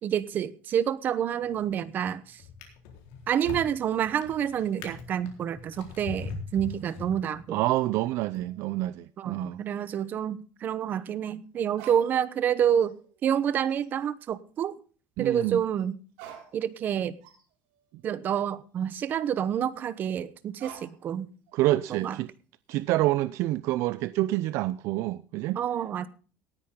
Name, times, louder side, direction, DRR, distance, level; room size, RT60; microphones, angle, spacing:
voice 1, 0.0-2.4 3.3-7.6 9.2-13.0 13.2-14.8 15.2-15.9 16.5-17.2 18.0-21.3 21.9-22.2 25.6-26.1, right 9 dB, 35° right, 0.9 m, -28 dB
Drawer open or close, 1.4-1.9 2.4-7.6 8.3-8.5, left 5 dB, 90° left, 4.1 m, -41 dB
voice 2, 7.5-9.6 15.2-15.6 21.5-22.3 22.7-25.6, right 16 dB, 60° right, 0.5 m, -27 dB
sound 1, 7.5-9.5 9.8-9.9 11.7-12.5 12.8-13.3 13.6-14.0 15.8-15.9 16.1-19.4 20.6-21.1 21.5-22.2, right 9 dB, 80° right, 6.4 m, -52 dB
18.0 x 10.0 x 3.8 m
cardioid pair, 155°, 5 cm